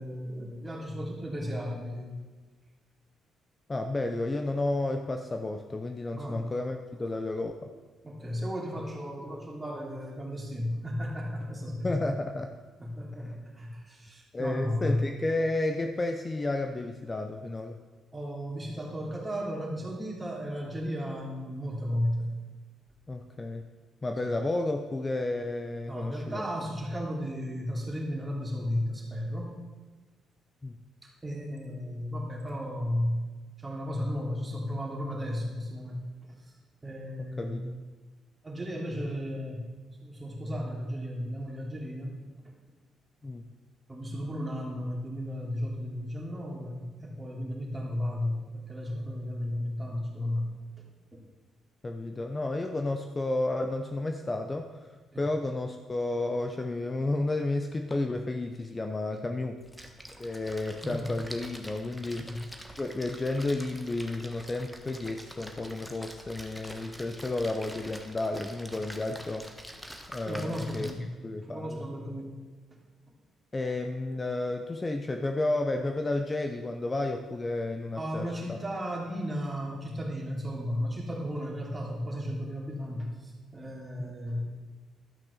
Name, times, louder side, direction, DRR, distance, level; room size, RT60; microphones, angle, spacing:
voice 1, 0.0-2.1 6.2-6.5 8.0-12.1 12.8-15.0 18.1-22.3 24.2-24.3 25.9-29.5 31.2-33.2 33.6-36.5 36.8-37.6 38.4-39.6 40.0-42.2 43.9-50.5 50.8-50.9 51.1-51.2 55.1-55.3 60.8-61.0 62.1-62.4 70.2-71.0 71.4-72.4 77.9-84.4, equal, 15° right, -1 dB, 2.9 m, -34 dB
voice 2, 3.7-7.5 11.8-12.5 13.2-13.6 14.3-17.8 23.1-23.6 24.0-26.4 30.6-30.7 37.2-37.8 43.2-43.4 51.8-59.6 60.2-62.3 62.8-69.5 70.1-70.9 71.2-71.9 73.5-78.6 84.0-84.2, left 2 dB, 25° left, 5 dB, 0.7 m, -32 dB
Splash splatter, 59.6-70.9, equal, 5° left, 1.2 m, -46 dB
12.0 x 6.0 x 6.6 m, 1.3 s
cardioid pair, 90°, 0 cm